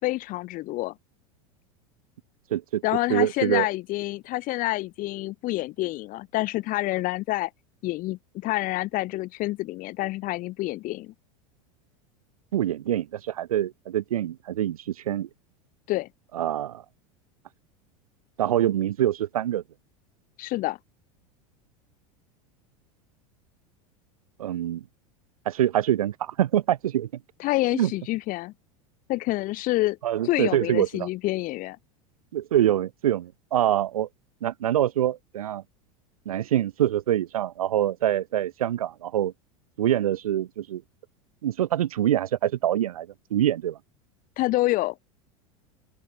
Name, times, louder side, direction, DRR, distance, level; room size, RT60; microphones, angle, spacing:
voice 1, 0.0-0.9 2.8-7.5 7.8-11.1 15.9-16.1 20.4-20.8 27.4-28.5 29.1-30.0 30.2-31.8 44.4-44.9, left 18 dB, 45° left, 4.8 m, -27 dB
voice 2, 2.5-2.8 3.1-3.7 12.5-15.3 16.3-16.8 18.4-19.6 24.4-24.8 25.5-27.1 27.7-27.9 30.0-31.1 32.3-34.1 34.4-35.6 36.3-39.3 39.8-40.8 41.4-43.8, right 11 dB, 75° right, 2.4 m, -25 dB
open air
hypercardioid pair, 85°, 19 cm